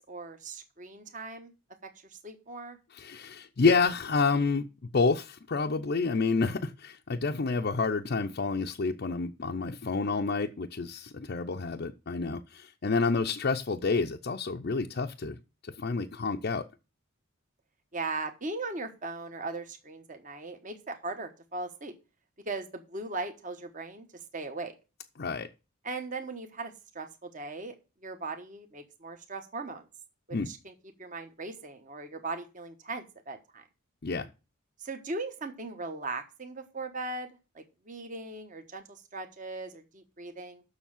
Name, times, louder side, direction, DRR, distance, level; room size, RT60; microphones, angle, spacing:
voice 1, 0.1-1.5 2.2-2.8 7.2-7.3 17.9-21.9 22.5-24.1 24.3-24.7 25.8-27.7 28.0-29.8 30.3-30.7 31.0-33.6 34.8-37.3 37.5-40.6, right 3 dB, 35° right, 7 dB, 1.1 m, -38 dB
voice 2, 2.9-4.7 4.9-15.4 15.6-16.6 25.2-25.5 30.3-30.5 34.0-34.3, left 4 dB, 45° left, 2 dB, 0.5 m, -29 dB
7.2 x 6.4 x 7.2 m, 0.30 s
head